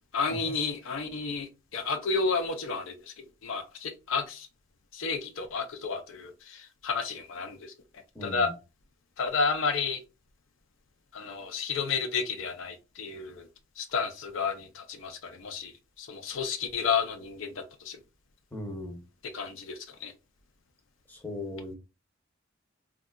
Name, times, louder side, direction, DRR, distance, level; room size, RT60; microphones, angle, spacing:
voice 1, 0.1-3.1 3.4-4.5 4.9-7.7 8.2-8.5 9.2-10.0 11.1-13.5 13.8-15.7 16.0-18.0 19.3-20.1, left 5 dB, 75° left, 0.5 m, -31 dB
voice 2, 8.1-8.5 18.5-19.0 21.1-21.8, left 1 dB, 10° left, 0.7 m, -38 dB
3.7 x 2.3 x 2.2 m
head